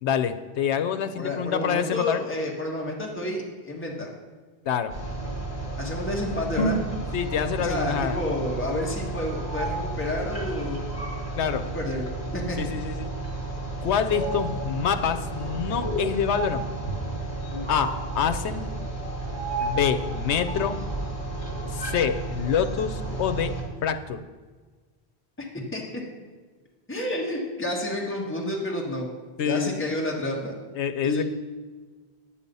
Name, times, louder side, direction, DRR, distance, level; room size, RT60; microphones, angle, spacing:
voice 1, 0.0-2.2 4.6-4.9 7.1-8.2 11.4-11.7 12.6-13.1 13.8-16.7 17.7-18.6 19.6-20.8 21.7-23.5 23.8-24.2 29.4-29.8 30.7-31.2, left 8 dB, 85° left, 9 dB, 1.0 m, -26 dB
voice 2, 1.1-4.1 5.8-6.8 7.6-10.9 11.7-12.0 12.3-12.6 25.4-25.5 25.7-25.8 26.9-29.1 29.4-30.5 31.0-31.2, left 1 dB, 10° left, -2 dB, 1.5 m, -30 dB
sound 1, 4.9-23.6, right 2 dB, 50° left, 3.3 m, -31 dB
9.9 x 8.6 x 5.4 m, 1.4 s
omnidirectional pair, 1.1 m